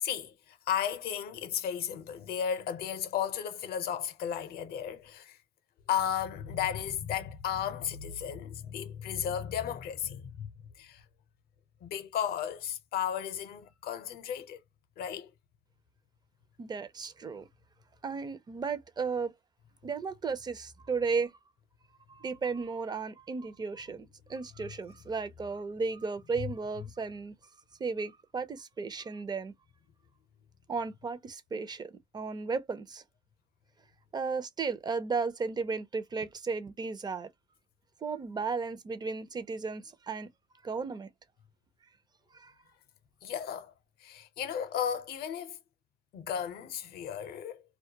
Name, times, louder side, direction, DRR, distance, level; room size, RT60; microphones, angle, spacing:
voice 1, 0.0-5.4 5.9-10.5 10.8-11.0 11.8-14.6 15.0-15.3 26.4-26.5 43.2-43.7 44.0-45.6 46.1-47.6, left 9 dB, 65° left, 0.6 m, -34 dB
voice 2, 16.6-17.4 18.0-19.3 19.8-21.3 22.1-27.3 27.8-29.5 30.7-33.0 34.1-37.3 38.0-40.3 40.6-41.1 42.3-42.5, right 4 dB, 25° right, 0.5 m, -34 dB
2.2 x 2.1 x 2.8 m
cardioid pair, 110°, 17 cm